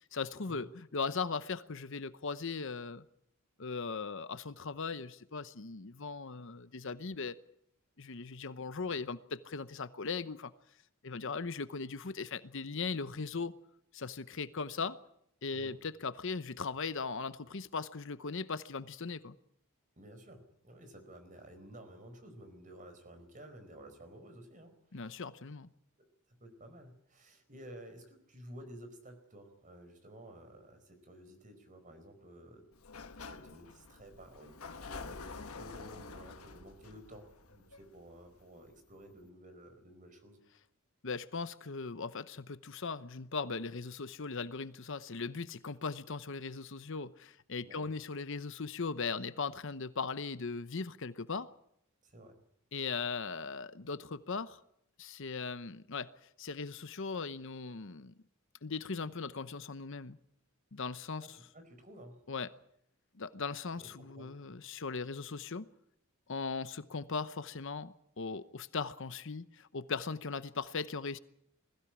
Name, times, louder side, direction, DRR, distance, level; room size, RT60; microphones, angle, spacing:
voice 1, 0.1-0.7 0.9-3.0 3.6-7.3 8.0-10.5 11.0-13.5 13.9-15.0 15.4-19.4 24.9-25.7 41.0-51.5 52.7-54.6 55.0-56.1 56.4-58.1 58.6-60.2 60.7-61.3 62.3-62.5 63.1-65.7 66.3-71.2, left 4 dB, 60° left, 0.9 m, -38 dB
voice 2, 20.0-25.2 26.0-32.7 33.1-40.4 47.6-47.9 52.0-52.4 61.2-62.2 63.8-64.3, right 1 dB, 35° right, 4.6 m, -53 dB
Sliding door, 32.7-38.4, left 4 dB, 80° left, 1.2 m, -48 dB
21.5 x 15.5 x 10.0 m
head